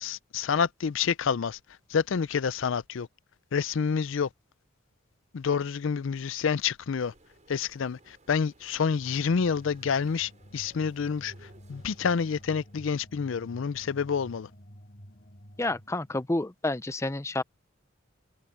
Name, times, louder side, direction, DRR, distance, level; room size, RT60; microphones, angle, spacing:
voice 1, 0.0-1.6 1.9-3.1 3.5-4.3 5.3-7.1 7.5-11.3 11.7-14.5, left 6 dB, 65° left, 0.4 m, -28 dB
sound 1, 7.0-12.9, right 2 dB, 35° right, 6.7 m, -60 dB
sound 2, 8.9-16.3, equal, 45° left, 4.3 m, -51 dB
voice 2, 15.6-17.4, left 2 dB, 15° left, 0.5 m, -29 dB
head